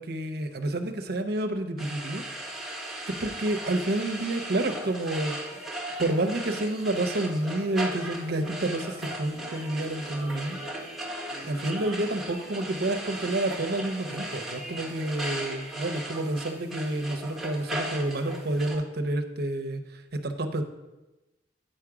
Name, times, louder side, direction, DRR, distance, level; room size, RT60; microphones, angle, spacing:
voice 1, 0.0-2.2 3.2-5.4 6.0-10.6 11.4-20.6, right 1 dB, 55° right, 7 dB, 0.6 m, -29 dB
sound 1, 1.8-18.8, right 1 dB, ahead, 0.9 m, -37 dB
sound 2, 9.3-15.4, right 1 dB, 90° left, 1.8 m, -47 dB
8.9 x 4.9 x 4.8 m, 1.0 s
head